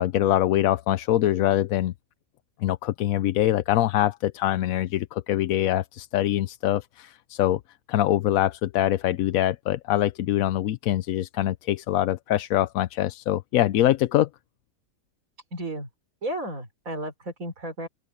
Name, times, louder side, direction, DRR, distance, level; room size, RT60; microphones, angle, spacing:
voice 1, 0.0-1.9 2.6-7.6 7.9-14.3, left 13 dB, 85° left, 1.0 m, -24 dB
voice 2, 15.5-15.9 16.2-17.9, right 1 dB, 80° right, 4.5 m, -33 dB
open air
omnidirectional pair, 1.4 m